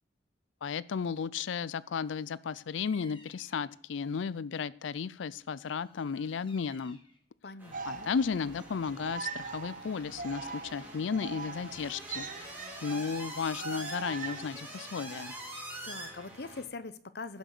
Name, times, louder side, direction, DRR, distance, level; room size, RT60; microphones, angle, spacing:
voice 1, 0.6-7.0 7.9-12.5 12.8-15.3, left 6 dB, 80° left, 20 dB, 0.4 m, -34 dB
Bird vocalization bird call bird song, 2.7-3.7 5.6-7.2, left 3 dB, 30° left, 1.8 m, -57 dB
voice 2, 7.4-8.1 15.8-17.4, left 3 dB, 60° left, 13 dB, 0.8 m, -43 dB
sound 1, 7.6-16.6, right 1 dB, 10° right, 3.3 m, -45 dB
sound 2, 7.7-14.5, right 4 dB, 45° right, 1.0 m, -42 dB
16.0 x 6.2 x 6.7 m, 0.63 s
head